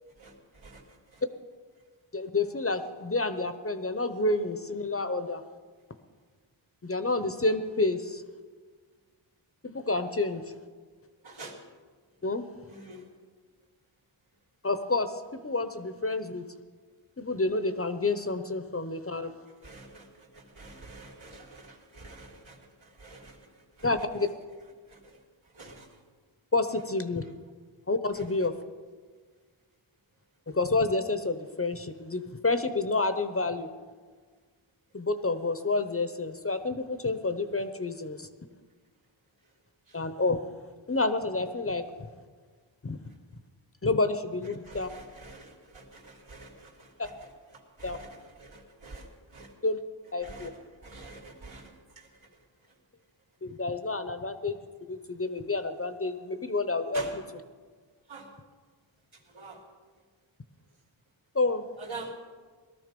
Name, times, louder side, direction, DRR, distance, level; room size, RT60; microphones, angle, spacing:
voice 1, 2.1-5.4 6.8-8.2 9.6-10.4 12.2-12.4 14.6-16.4 17.2-19.3 23.8-24.3 26.5-27.2 27.9-28.5 30.5-33.7 34.9-38.3 39.9-40.4 40.9-42.1 42.8-43.0 43.8-44.9 47.0-47.1 47.8-48.0 49.6-49.8 50.1-50.5 53.4-54.6 54.9-57.2 61.3-61.6, left 3 dB, 30° left, 10 dB, 0.8 m, -29 dB
voice 2, 11.2-11.6 12.7-13.1 19.6-23.5 23.8-23.9 24.9-25.2 25.5-25.9 28.1-28.2 39.9-40.0 44.7-46.9 47.8-49.5 50.2-50.5 50.8-52.3 56.9-57.1 58.1-58.3 59.3-59.6 61.8-62.1, right 3 dB, 75° right, -1 dB, 3.0 m, -46 dB
18.5 x 13.0 x 5.3 m, 1.5 s
wide cardioid pair, 85°, 48 cm